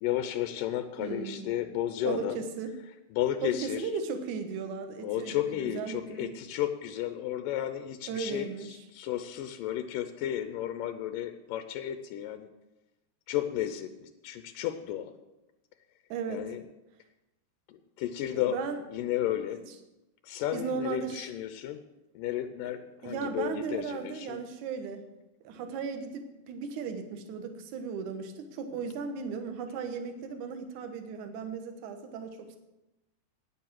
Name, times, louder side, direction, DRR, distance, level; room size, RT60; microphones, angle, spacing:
voice 1, 0.0-2.4 3.1-3.9 5.0-12.5 13.3-15.1 16.3-16.6 18.0-18.6 18.9-19.6 20.2-21.8 22.1-24.4, left 12 dB, 85° left, 9 dB, 1.9 m, -33 dB
voice 2, 1.0-1.5 2.0-2.8 3.4-6.4 8.1-8.8 16.1-16.5 18.3-18.8 19.5-19.7 20.5-21.3 23.0-25.0 25.4-32.6, right 5 dB, 65° right, 7 dB, 2.1 m, -36 dB
9.7 x 9.6 x 7.5 m, 0.99 s
omnidirectional pair, 4.7 m